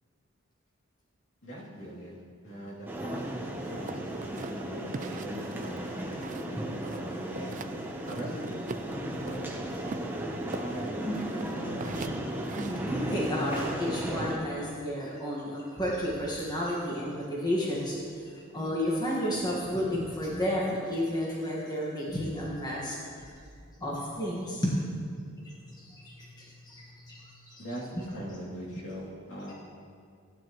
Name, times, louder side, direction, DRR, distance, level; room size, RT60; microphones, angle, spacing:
voice 1, 1.4-3.3 3.6-6.2 6.5-7.5 8.1-9.5 10.5-12.1 27.6-29.5, equal, 65° left, -5 dB, 2.7 m, -41 dB
sound 1, 2.9-14.4, right 1 dB, 10° right, 0.9 m, -35 dB
sound 2, 3.9-6.5 6.8-7.7 8.1-9.4 9.9-13.7, right 4 dB, 40° right, 0.4 m, -42 dB
voice 2, 12.5-23.3 23.8-24.8 25.4-27.6 27.9-28.0, equal, 20° left, -5 dB, 1.5 m, -32 dB
16.0 x 9.6 x 3.1 m, 2.2 s
head